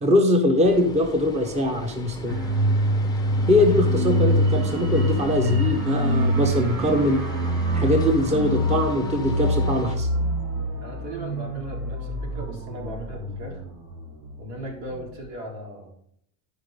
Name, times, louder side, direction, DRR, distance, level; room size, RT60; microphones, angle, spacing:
voice 1, 0.0-2.4 3.5-7.2 7.7-10.1, left 1 dB, 15° right, 5 dB, 1.0 m, -22 dB
sound 1, 0.6-10.0, left 4 dB, 10° left, 0.6 m, -39 dB
sound 2, 2.3-14.6 14.9-15.1, equal, 50° right, 2.2 m, -25 dB
voice 2, 10.8-13.6 14.4-15.9, right 1 dB, 80° right, 0 dB, 3.8 m, -37 dB
11.5 x 5.3 x 5.2 m, 0.68 s
cardioid pair, 145°, 45 cm